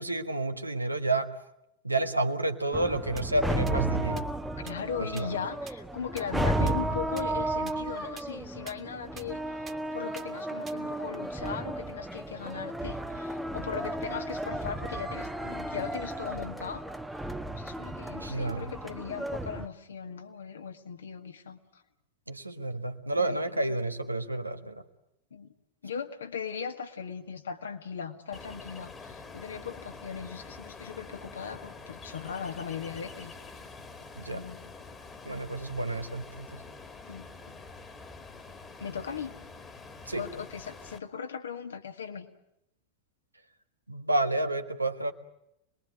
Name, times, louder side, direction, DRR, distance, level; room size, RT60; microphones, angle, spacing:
voice 1, 0.0-1.3 1.8-4.3 5.0-5.3 18.1-18.7 22.3-24.8 34.2-34.4 35.2-36.6 40.1-40.2 43.9-45.1, right 2 dB, 85° right, 7 dB, 1.5 m, -30 dB
sound 1, 2.7-19.7, right 1 dB, 5° right, 1.1 m, -34 dB
sound 2, 3.2-3.3 3.7-3.8 4.2-4.3 4.7-4.8 5.2-5.3 5.7-5.8 6.2-6.3 6.7-6.8 7.2-7.3 7.7-7.8 8.2-8.3 8.7-8.8 9.2-9.3 9.7-9.8 10.2-10.3 10.7-10.8, right 6 dB, 20° right, 2.0 m, -44 dB
voice 2, 4.6-16.8 17.6-21.8 23.2-23.8 25.3-25.5 25.8-33.6 34.3-34.7 37.0-37.3 38.8-39.4 40.2-42.3, left 7 dB, 70° left, 6 dB, 2.0 m, -39 dB
Ocean, 28.3-41.0, left 4 dB, 20° left, 2.1 m, -46 dB
26.5 x 21.5 x 9.2 m, 0.82 s
figure-of-eight pair, 90°, 0 cm